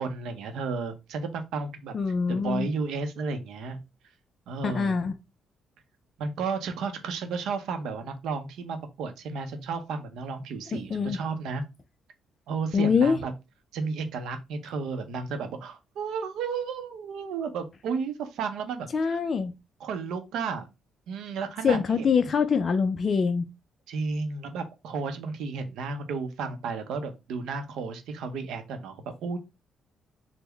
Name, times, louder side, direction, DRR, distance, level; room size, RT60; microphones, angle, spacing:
voice 1, 0.0-1.9 2.3-3.8 4.5-5.1 6.2-11.6 12.5-13.3 13.7-19.2 19.8-20.7 21.1-22.1 23.9-29.4, right 5 dB, 80° right, 0.6 m, -33 dB
voice 2, 1.9-2.7 4.6-5.1 10.7-11.2 12.7-13.2 18.9-19.5 21.6-23.4, left 5 dB, 45° left, 0.3 m, -24 dB
3.5 x 2.1 x 3.3 m
cardioid pair, 90°, 0 cm